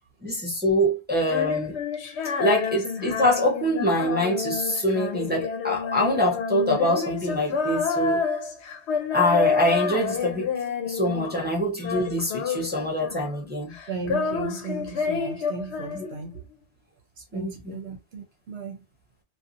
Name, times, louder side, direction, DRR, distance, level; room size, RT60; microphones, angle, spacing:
voice 1, 0.2-1.8 2.4-8.2 9.1-10.5 10.9-13.8 15.9-16.1 17.3-17.8, equal, 15° right, 0.5 m, -24 dB
Female singing, 1.2-11.5 11.8-13.5 13.7-16.4, left 5 dB, 80° left, 0.9 m, -29 dB
voice 2, 13.9-16.4 17.2-18.8, right 4 dB, 75° right, 0.8 m, -35 dB
2.6 x 2.3 x 2.4 m
omnidirectional pair, 1.1 m